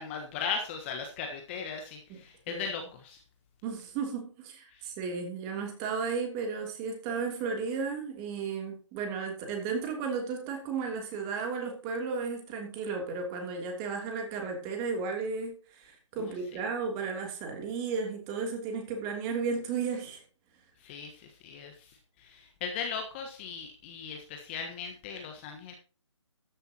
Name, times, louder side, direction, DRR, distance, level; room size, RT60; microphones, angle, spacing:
voice 1, 0.0-3.2 4.7-4.9 16.2-16.6 20.8-25.7, left 6 dB, 20° left, 4 dB, 1.4 m, -38 dB
voice 2, 3.6-20.2, right 5 dB, 20° right, 3 dB, 3.0 m, -34 dB
14.0 x 10.5 x 2.9 m, 0.36 s
figure-of-eight pair, 150°, 16 cm